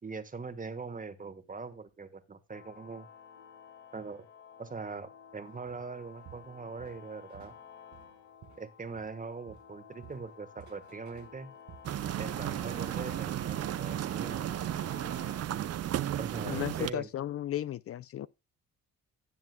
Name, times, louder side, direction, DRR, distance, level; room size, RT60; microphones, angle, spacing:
voice 1, 0.0-3.1 3.9-4.3 4.6-7.5 8.6-11.5 12.2-14.4 16.1-17.1, right 4 dB, 25° right, 1.5 m, -42 dB
sound 1, 2.5-15.4, left 7 dB, 75° left, 2.2 m, -53 dB
Walk footsteps, 5.7-5.9 6.2-7.6 7.9-9.2 9.5-13.0 13.3-13.6 14.0-14.1, right 10 dB, 70° right, 1.2 m, -54 dB
sound 2, 11.8-16.9, right 11 dB, 55° right, 0.7 m, -34 dB
voice 2, 16.4-18.3, left 12 dB, 50° left, 0.5 m, -35 dB
16.0 x 7.5 x 2.3 m
cardioid pair, 90°, 30 cm